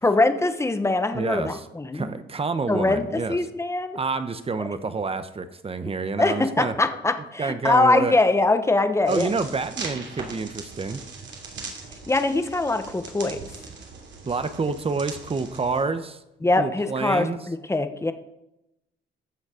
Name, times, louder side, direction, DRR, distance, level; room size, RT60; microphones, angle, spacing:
voice 1, 0.0-2.1 2.7-4.0 6.2-9.3 12.1-13.4 16.4-18.1, left 2 dB, 15° left, 9 dB, 1.1 m, -22 dB
voice 2, 1.1-1.7 1.9-3.4 3.9-6.7 7.4-8.2 9.1-11.0 14.2-16.2 16.5-17.4, right 4 dB, 30° right, 11 dB, 1.0 m, -28 dB
sound 1, 9.0-15.8, right 4 dB, 65° right, 3.0 m, -40 dB
14.5 x 6.3 x 5.1 m, 0.89 s
cardioid pair, 90°, 20 cm